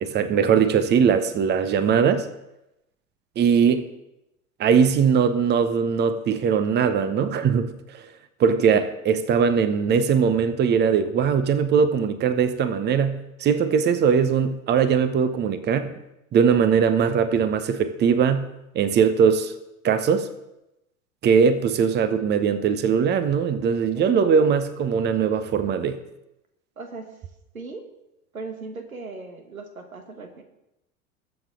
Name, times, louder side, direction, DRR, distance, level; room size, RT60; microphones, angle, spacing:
voice 1, 0.0-2.3 3.4-3.8 4.6-8.0 8.4-15.9 16.3-19.5 19.8-20.3 21.2-26.0, right 6 dB, 25° right, 13 dB, 0.9 m, -20 dB
voice 2, 23.9-24.5 26.8-27.2 27.5-27.8 28.3-30.4, right 4 dB, 80° right, 6 dB, 1.7 m, -37 dB
21.0 x 7.5 x 3.7 m, 0.89 s
figure-of-eight pair, 80°, 41 cm